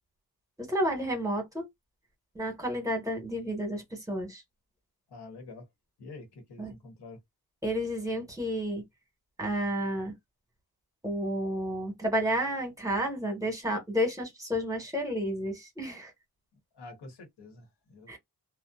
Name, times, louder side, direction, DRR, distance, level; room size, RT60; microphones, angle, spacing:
voice 1, 0.6-1.6 2.3-4.4 6.6-6.7 7.6-8.8 9.4-10.1 11.0-16.1 18.1-18.2, equal, 10° right, 1.2 m, -31 dB
voice 2, 5.1-5.6 6.0-7.2 16.7-18.2, left 3 dB, 85° left, 1.1 m, -47 dB
2.6 x 2.1 x 2.3 m
wide cardioid pair, 120°, 39 cm